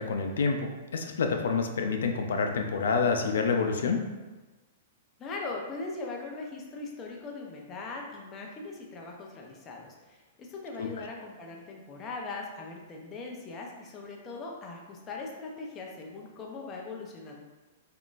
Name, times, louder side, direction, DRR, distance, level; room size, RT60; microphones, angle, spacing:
voice 1, 0.0-4.0 10.8-10.9, left 5 dB, 85° left, 4 dB, 0.4 m, -28 dB
voice 2, 5.2-17.4, left 3 dB, 20° left, -1 dB, 0.4 m, -40 dB
3.6 x 2.4 x 2.4 m, 1.2 s
hypercardioid pair, 165°, 0 cm